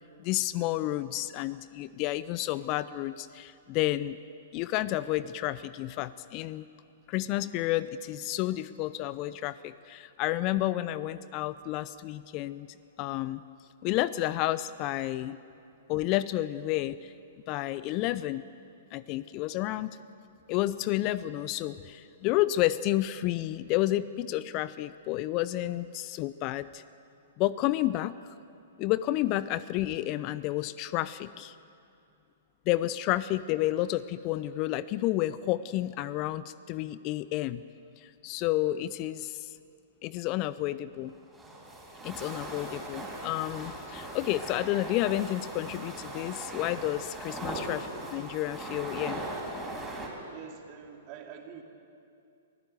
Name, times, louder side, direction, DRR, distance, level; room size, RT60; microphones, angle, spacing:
voice 1, 0.2-4.2 4.5-6.7 7.1-12.7 13.0-13.4 13.8-15.4 15.9-17.1 17.5-18.4 18.9-20.0 20.5-26.8 27.4-28.1 28.8-31.5 32.7-37.6 38.0-39.5 40.0-41.1 42.0-47.8 48.1-49.2, left 15 dB, 40° left, 17 dB, 0.5 m, -30 dB
sound 1, 41.1-50.1, right 1 dB, 10° right, 5.0 m, -39 dB
voice 2, 47.5-47.8 50.3-51.6, right 7 dB, 40° right, 3 dB, 2.7 m, -46 dB
23.5 x 15.0 x 8.0 m, 2.5 s
figure-of-eight pair, 110°, 0 cm